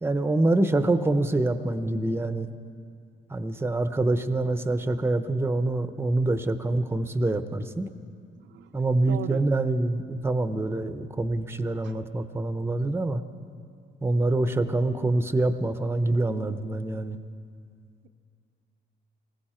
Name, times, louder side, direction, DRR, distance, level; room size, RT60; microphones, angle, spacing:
voice 1, 0.0-2.5 3.3-7.9 8.7-13.2 14.0-17.2, right 2 dB, 10° right, 10 dB, 0.8 m, -25 dB
voice 2, 8.3-8.7 9.1-9.4 11.8-11.9, right 10 dB, 65° right, 10 dB, 0.7 m, -38 dB
20.0 x 16.5 x 4.4 m, 2.3 s
cardioid pair, 90°, 20 cm